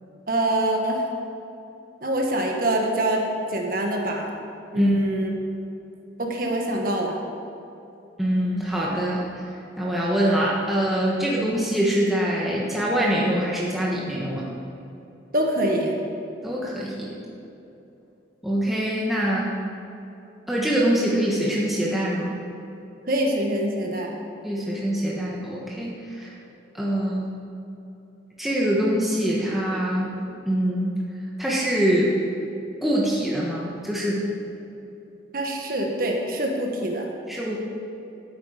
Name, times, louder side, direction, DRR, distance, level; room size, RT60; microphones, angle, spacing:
voice 1, 0.3-1.0 2.0-4.3 4.7-5.3 6.2-7.2 15.3-15.9 23.1-24.1 35.3-37.1, right 1 dB, 50° right, 1 dB, 1.4 m, -25 dB
voice 2, 8.2-9.4 9.8-14.5 16.4-17.1 18.4-19.5 20.5-22.3 24.4-26.3 26.7-27.2 28.4-30.1 30.4-30.9 31.4-32.1 32.8-34.2 37.3-37.6, right 1 dB, ahead, -6 dB, 1.4 m, -24 dB
12.5 x 9.0 x 5.0 m, 2.9 s
head